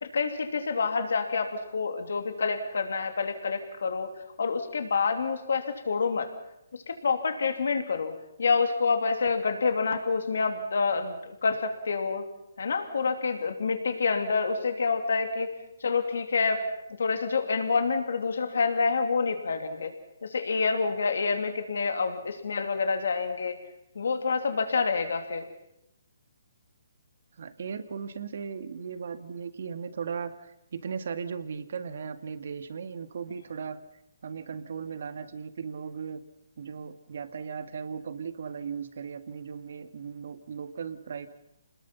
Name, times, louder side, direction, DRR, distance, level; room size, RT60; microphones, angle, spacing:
voice 1, 0.0-4.1 4.4-6.3 6.9-8.1 8.4-12.3 12.6-15.5 15.8-16.6 17.0-19.9 20.2-23.5 23.9-25.5, left 4 dB, 75° left, 6 dB, 3.0 m, -27 dB
voice 2, 27.4-33.8 34.2-36.2 36.6-41.3, right 6 dB, 60° right, 11 dB, 1.8 m, -37 dB
27.5 x 20.5 x 5.7 m, 0.82 s
hypercardioid pair, 155°, 0 cm